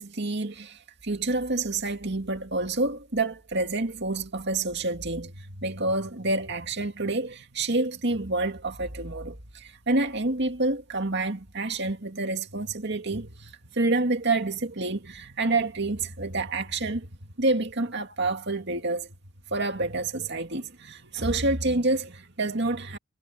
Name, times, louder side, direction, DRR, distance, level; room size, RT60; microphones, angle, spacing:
voice 1, 0.0-19.1 19.5-23.0, right 2 dB, 55° right, 2.3 m, -28 dB
head